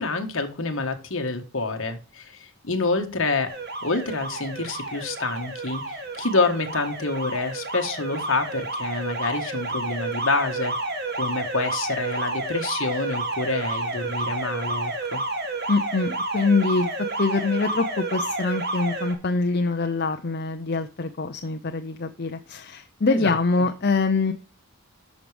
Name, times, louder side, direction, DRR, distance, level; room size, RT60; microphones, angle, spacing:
voice 1, 0.0-3.5 3.8-10.7 11.2-15.2 23.1-23.3, left 3 dB, 60° left, 5 dB, 1.6 m, -27 dB
Alarm, 3.5-19.1, right 2 dB, 45° right, 1.9 m, -30 dB
voice 2, 15.7-16.9 17.2-24.3, left 3 dB, 45° left, 6 dB, 0.6 m, -24 dB
11.5 x 6.1 x 3.4 m, 0.33 s
head